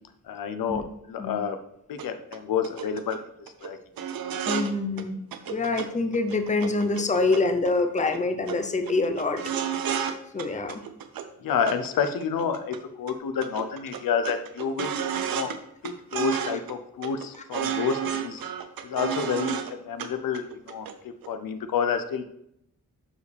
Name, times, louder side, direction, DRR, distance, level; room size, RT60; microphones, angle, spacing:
voice 1, 0.2-0.8 1.1-1.6 1.9-3.2 3.6-3.8 11.4-15.5 15.8-18.4 18.8-19.6 19.8-22.3, left 7 dB, 80° left, 8 dB, 0.7 m, -29 dB
sound 1, 2.0-2.1 2.3-2.4 2.6-3.2 3.5-3.7 4.0-4.7 5.0-5.1 5.3-5.9 6.1-7.7 8.0-8.2 8.5-8.6 8.9-10.1 10.4-11.3 11.7-12.8 13.1-13.2 13.4-15.6 15.8-16.7 17.0-19.7 20.0-20.1 20.3-20.9 21.2-21.3, right 8 dB, 85° right, 0.8 m, -31 dB
voice 2, 4.5-5.2 5.5-9.4 10.3-10.8, left 3 dB, 20° left, 6 dB, 0.7 m, -25 dB
11.5 x 4.9 x 3.4 m, 0.76 s
wide cardioid pair, 115°, 34 cm